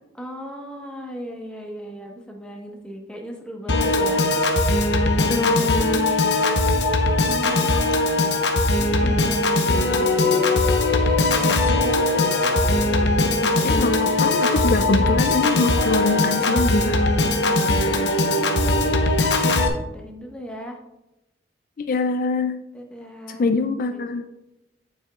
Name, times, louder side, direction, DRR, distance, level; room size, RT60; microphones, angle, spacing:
voice 1, 0.1-4.2 6.7-6.8 7.2-8.0 8.8-10.5 11.1-12.1 17.4-20.8 22.7-23.5 23.8-24.3, equal, 5° left, 0 dB, 1.2 m, -37 dB
Piano / Organ, 3.7-19.7, left 2 dB, 75° left, 1.0 m, -20 dB
voice 2, 5.0-5.9 13.4-17.0 21.8-22.5 23.3-24.3, left 4 dB, 50° left, 7 dB, 0.4 m, -24 dB
8.8 x 7.4 x 2.4 m, 0.96 s
head